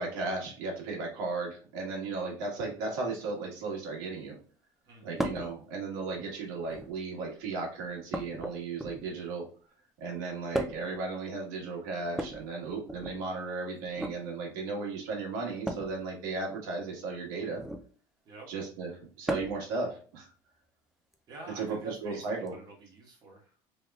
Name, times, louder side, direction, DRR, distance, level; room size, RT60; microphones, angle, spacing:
voice 1, 0.0-4.4 5.0-9.5 10.0-17.6 18.5-18.9 19.2-20.3 21.5-22.5, right 3 dB, 80° right, -2 dB, 1.5 m, -35 dB
voice 2, 4.8-5.3 18.2-18.5 21.3-23.6, right 2 dB, 40° right, -2 dB, 1.6 m, -49 dB
sound 1, 5.2-5.5 6.6-7.1 8.1-9.2 10.5-11.0 12.1-13.2 13.9-14.2 15.6-16.0 17.5-17.9 19.3-19.7 21.1-21.2 22.5-22.6, right 1 dB, 5° right, 0.4 m, -35 dB
3.4 x 3.3 x 2.3 m, 0.41 s
cardioid pair, 135°, 11 cm